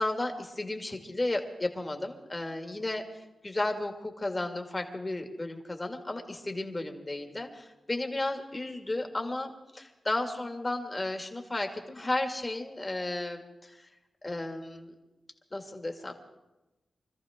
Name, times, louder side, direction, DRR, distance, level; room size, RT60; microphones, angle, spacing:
voice 1, 0.0-13.9 14.2-14.9 15.5-16.1, left 2 dB, 25° left, 3 dB, 2.2 m, -34 dB
25.0 x 14.5 x 3.7 m, 1.0 s
cardioid pair, 75°, 0 cm